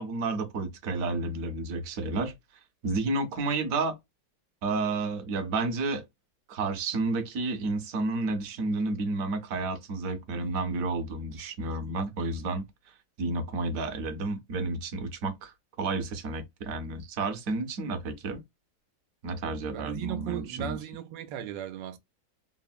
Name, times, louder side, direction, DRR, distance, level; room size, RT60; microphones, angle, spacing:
voice 1, 0.0-2.3 2.8-4.0 4.6-6.0 6.5-18.4 19.2-20.8, right 3 dB, 60° right, 0.9 m, -31 dB
voice 2, 19.7-22.0, right 10 dB, 90° right, 1.3 m, -36 dB
3.4 x 2.0 x 2.2 m
omnidirectional pair, 1.9 m